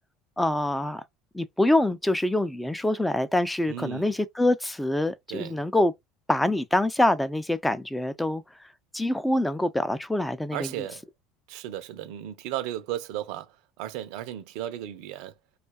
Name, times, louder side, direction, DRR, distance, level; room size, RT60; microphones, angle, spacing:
voice 1, 0.4-1.0 1.3-5.9 6.3-8.4 8.9-10.7, left 1 dB, 5° left, 0.4 m, -25 dB
voice 2, 3.7-4.1 5.3-5.6 10.5-11.1 11.5-15.3, right 12 dB, 70° right, 0.6 m, -35 dB
2.6 x 2.2 x 2.3 m
hypercardioid pair, 90°, 0 cm